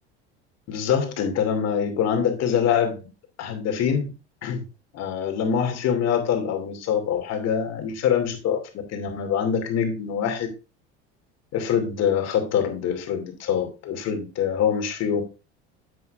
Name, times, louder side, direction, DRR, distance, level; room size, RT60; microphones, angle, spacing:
voice 1, 0.7-3.1 3.4-4.1 4.4-4.6 4.9-8.6 8.9-10.5 11.5-15.2, left 8 dB, 55° left, 5 dB, 2.7 m, -24 dB
10.0 x 7.6 x 2.6 m, 0.30 s
hypercardioid pair, 80°, 32 cm